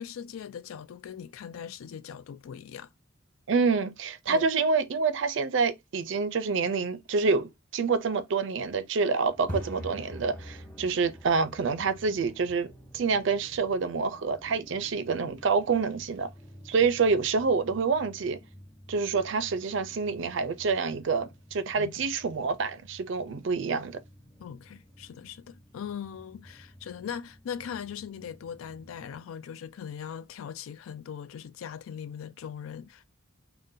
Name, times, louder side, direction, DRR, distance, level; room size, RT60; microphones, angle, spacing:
voice 1, 0.0-2.9 4.3-4.5 21.8-21.9 24.4-33.1, left 8 dB, 85° left, 0.3 m, -40 dB
voice 2, 3.5-16.3 16.7-18.4 18.9-24.0, right 4 dB, 60° right, 0.4 m, -27 dB
sound 1, 9.3-29.2, equal, 5° left, 0.6 m, -48 dB
3.7 x 2.1 x 2.6 m
head